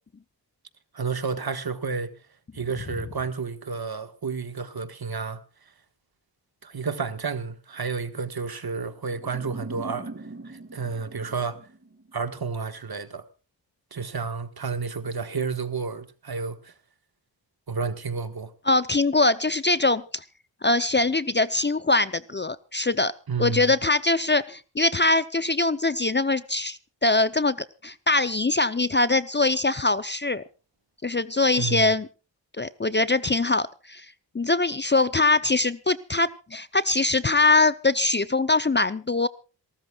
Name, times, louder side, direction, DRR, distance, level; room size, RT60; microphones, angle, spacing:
voice 1, 0.9-2.1 2.5-5.4 6.6-11.6 12.1-13.2 13.9-16.7 17.7-18.5 23.3-23.7 31.6-31.9, right 5 dB, 55° right, 1.6 m, -31 dB
sound 1, 9.1-12.3, right 2 dB, 30° right, 2.1 m, -41 dB
voice 2, 18.7-20.2 20.6-23.1 23.4-27.6 27.8-30.4 31.0-32.1 32.6-34.1 34.3-39.3, left 2 dB, 25° left, 0.6 m, -22 dB
27.0 x 13.5 x 2.4 m
cardioid pair, 55°, 45 cm